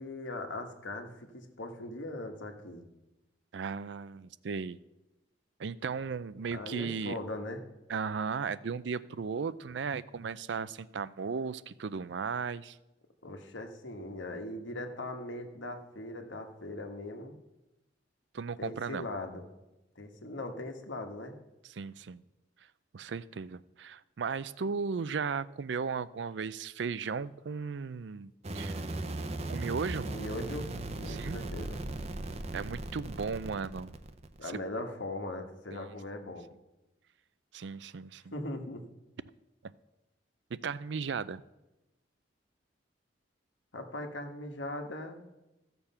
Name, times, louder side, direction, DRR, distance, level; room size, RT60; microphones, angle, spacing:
voice 1, 0.0-2.9 6.5-7.6 13.2-17.3 18.6-19.4 19.9-21.4 30.0-30.7 30.9-31.9 34.4-36.4 38.3-38.8 43.7-45.2, left 1 dB, 90° left, 4 dB, 1.6 m, -40 dB
voice 2, 3.5-4.8 5.6-7.2 7.9-12.8 18.3-19.1 21.6-22.2 22.9-28.8 29.5-30.1 31.1-31.4 32.5-33.9 34.4-34.6 35.7-35.8 37.5-38.3 40.5-41.4, right 5 dB, 70° right, 17 dB, 0.4 m, -36 dB
sound 1, 28.4-34.6, right 2 dB, 35° right, 0.7 m, -38 dB
15.0 x 6.9 x 5.6 m, 0.98 s
head